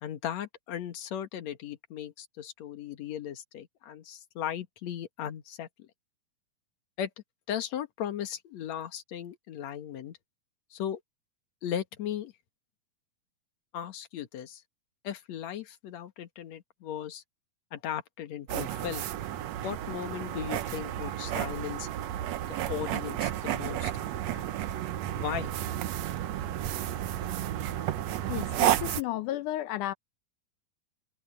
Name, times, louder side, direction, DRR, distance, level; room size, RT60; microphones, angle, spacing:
voice 1, 0.0-5.9 7.0-7.1 7.5-10.2 10.7-11.0 11.6-12.3 13.7-14.6 15.0-17.2 17.7-19.1 19.6-21.9 22.5-23.9 24.2-24.5 25.1-25.5, left 10 dB, 55° left, 2.3 m, -37 dB
sound 1, 18.5-29.0, right 12 dB, 80° right, 1.5 m, -32 dB
voice 2, 28.3-29.9, left 14 dB, 75° left, 2.0 m, -33 dB
omnidirectional pair, 4.3 m